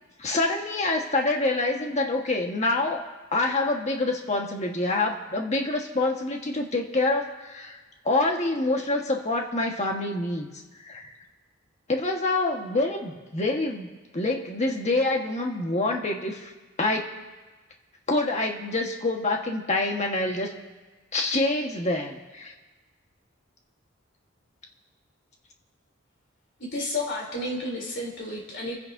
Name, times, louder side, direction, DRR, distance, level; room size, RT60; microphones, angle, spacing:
voice 1, 0.2-7.8 8.0-10.5 10.8-11.1 11.9-16.5 16.8-17.2 18.1-20.5 21.1-22.5, left 2 dB, 35° left, 1 dB, 1.6 m, -26 dB
voice 2, 26.7-28.7, left 2 dB, 60° left, -2 dB, 3.7 m, -31 dB
28.5 x 10.5 x 2.8 m, 1.2 s
head